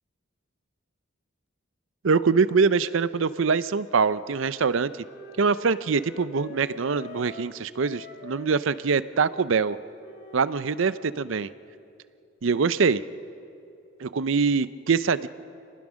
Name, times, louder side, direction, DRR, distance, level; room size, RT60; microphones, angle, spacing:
voice 1, 2.0-4.9 5.4-9.8 10.3-11.5 12.4-13.0 14.0-15.3, right 5 dB, 70° right, 16 dB, 0.5 m, -24 dB
Wind instrument woodwind instrument, 4.1-11.5, left 3 dB, 50° left, 1.7 m, -47 dB
27.0 x 19.5 x 6.3 m, 2.7 s
head